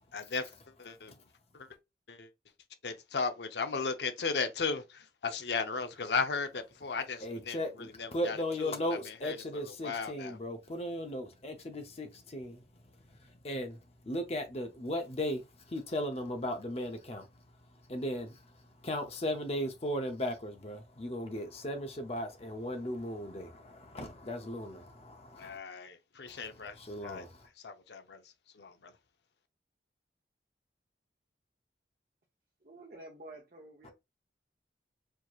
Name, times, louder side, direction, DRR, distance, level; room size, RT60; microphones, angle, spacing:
voice 1, 0.1-0.5 0.8-1.1 1.5-1.7 2.1-2.3 2.8-8.8 9.2-9.4 9.6-10.4 25.4-26.8 27.0-27.3 27.6-28.2 28.5-28.9, left 4 dB, 70° left, 0.6 m, -36 dB
voice 2, 7.2-17.3 17.9-18.5 18.8-25.6 26.3-27.5 33.8-33.9, left 1 dB, 35° left, 0.7 m, -37 dB
voice 3, 32.6-33.9, right 1 dB, 50° right, 0.8 m, -50 dB
4.6 x 2.8 x 2.4 m
head